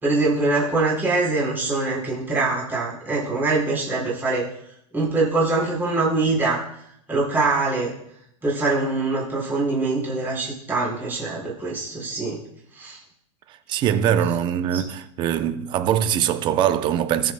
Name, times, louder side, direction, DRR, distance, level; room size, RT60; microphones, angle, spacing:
voice 1, 0.0-4.5 4.9-6.6 7.1-7.9 8.4-12.4 12.7-13.0 14.7-14.8, right 3 dB, 10° right, 4.3 m, -23 dB
voice 2, 13.5-17.3, right 9 dB, 25° right, 0.6 m, -22 dB
20.5 x 7.2 x 2.2 m
supercardioid pair, 150°, 17 cm